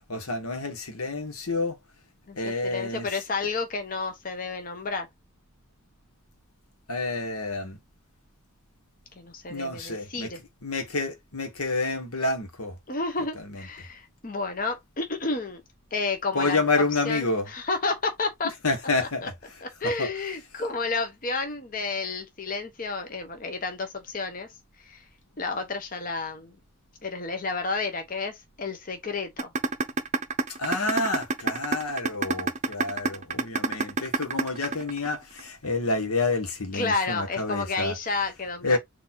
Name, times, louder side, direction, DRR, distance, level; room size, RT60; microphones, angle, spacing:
voice 1, 0.1-1.8 2.4-3.1 6.9-7.8 9.5-10.3 10.6-12.7 13.5-13.6 16.3-17.5 18.6-19.3 19.8-20.1 30.6-37.9 38.6-38.8, left 3 dB, 85° left, 1.4 m, -28 dB
voice 2, 2.3-5.1 9.2-10.4 12.9-15.6 15.9-18.5 19.0-19.3 19.6-24.5 24.8-25.0 25.4-26.6 27.0-29.5 36.7-38.8, left 3 dB, 40° left, 0.8 m, -31 dB
sound 1, 29.4-35.4, right 3 dB, 30° right, 0.6 m, -26 dB
4.0 x 2.7 x 4.3 m
head